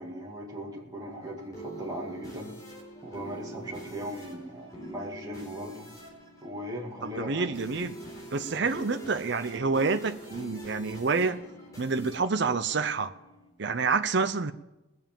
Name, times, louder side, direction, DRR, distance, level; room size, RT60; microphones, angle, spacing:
voice 1, 0.0-2.5 3.0-5.9 6.4-7.5 8.5-8.6, equal, 20° right, -3 dB, 2.1 m, -38 dB
sound 1, 0.8-13.5, right 1 dB, 15° left, 3.9 m, -45 dB
voice 2, 7.0-8.0 8.3-11.4 11.8-13.1 13.6-14.5, right 4 dB, 55° right, 9 dB, 0.6 m, -28 dB
19.5 x 7.3 x 7.4 m, 0.99 s
head